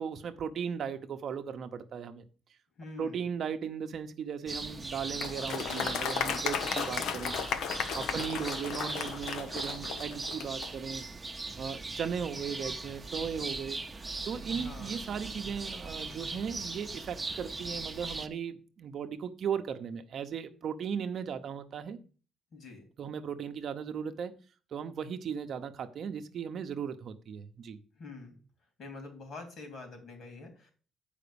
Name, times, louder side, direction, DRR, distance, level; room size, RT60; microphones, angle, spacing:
voice 1, 0.0-2.2 3.0-7.7 7.9-11.0 11.6-13.8 14.2-22.0 23.0-24.3 24.7-27.8, right 7 dB, 55° right, 0.8 m, -37 dB
voice 2, 2.8-3.3 8.0-8.3 14.5-15.0 22.5-22.8 28.0-28.4 28.8-30.7, left 3 dB, 55° left, 3.4 m, -46 dB
sound 1, 4.5-18.3, right 3 dB, 15° right, 0.8 m, -39 dB
Applause, 5.2-10.7, left 7 dB, 85° left, 0.9 m, -35 dB
8.2 x 5.1 x 6.9 m
cardioid pair, 150°, 0 cm